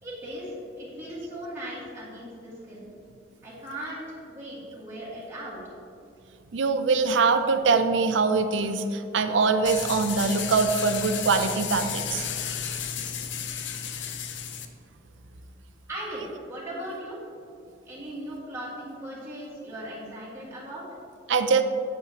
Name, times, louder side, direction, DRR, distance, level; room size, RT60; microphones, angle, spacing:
voice 1, 0.0-2.9 3.4-5.6 15.9-17.2 17.9-20.9, right 1 dB, 15° right, -9 dB, 1.8 m, -38 dB
voice 2, 6.5-12.3 21.3-21.6, right 4 dB, 80° right, 8 dB, 0.5 m, -23 dB
sound 1, 9.6-14.6, left 7 dB, 75° left, 0.6 m, -33 dB
8.5 x 8.4 x 2.9 m, 2.5 s
head